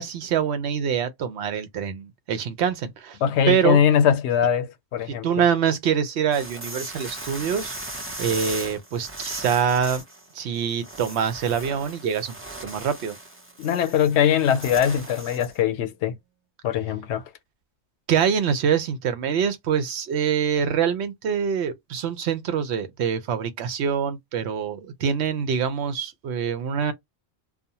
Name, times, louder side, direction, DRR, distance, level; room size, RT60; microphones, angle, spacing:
voice 1, 0.0-3.2 3.5-3.8 5.2-7.7 8.2-10.0 10.3-12.4 12.6-13.2 18.1-26.9, right 7 dB, 80° right, 0.9 m, -25 dB
voice 2, 3.2-5.4 13.6-16.2 16.6-17.2, left 8 dB, 85° left, 0.8 m, -21 dB
sound 1, 6.3-15.6, right 1 dB, 20° right, 0.4 m, -38 dB
2.5 x 2.1 x 2.7 m
omnidirectional pair, 1.1 m